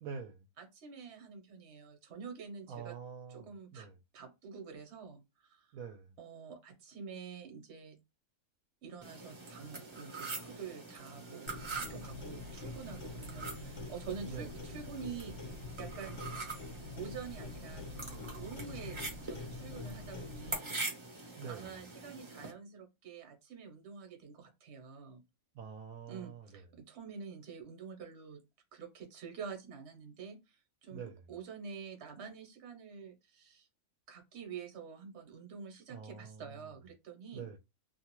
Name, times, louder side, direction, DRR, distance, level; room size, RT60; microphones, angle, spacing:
voice 1, 0.0-0.4 2.7-3.9 5.7-6.1 14.3-14.5 21.4-21.6 25.5-26.6 30.9-31.2 35.9-36.7 37.3-37.6, right 6 dB, 75° right, 1.0 m, -46 dB
voice 2, 0.6-2.9 3.3-3.9 4.1-5.7 6.2-8.0 8.8-16.2 16.9-19.0 19.2-25.2 26.1-28.4 28.7-33.7 34.1-37.5, right 6 dB, 55° right, 1.1 m, -47 dB
sound 1, 9.0-22.5, right 3 dB, 25° right, 0.7 m, -44 dB
Clock, 11.5-20.5, left 3 dB, 55° left, 1.1 m, -45 dB
2.6 x 2.3 x 2.9 m
omnidirectional pair, 1.5 m